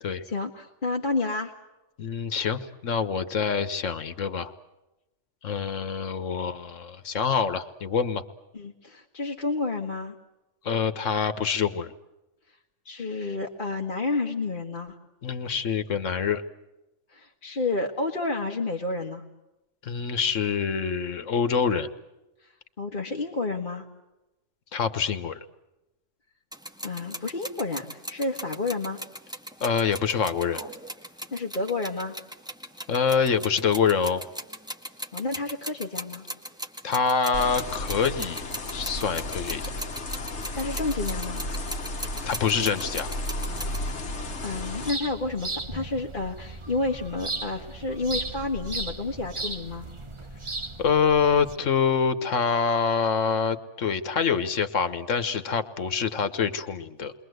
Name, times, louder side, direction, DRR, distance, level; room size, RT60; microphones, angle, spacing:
voice 1, 0.2-1.5 8.5-10.2 12.9-15.0 17.1-19.2 22.4-22.5 22.8-23.9 26.8-29.0 31.3-32.2 35.1-36.2 40.5-41.4 44.4-49.9, left 3 dB, 40° left, 1 dB, 1.9 m, -30 dB
voice 2, 2.0-4.5 5.4-8.2 10.6-11.9 15.2-16.4 19.8-21.9 24.7-25.4 29.6-30.6 32.9-34.2 36.8-38.4 38.7-39.7 42.2-43.1 50.8-57.1, left 6 dB, 90° left, 11 dB, 1.6 m, -25 dB
sound 1, 26.5-43.9, equal, 5° right, 1.9 m, -39 dB
sound 2, 37.3-44.9, left 1 dB, 65° left, 1.7 m, -33 dB
sound 3, 43.5-51.6, right 2 dB, 25° right, 1.3 m, -37 dB
29.0 x 23.0 x 8.0 m, 0.98 s
omnidirectional pair, 1.3 m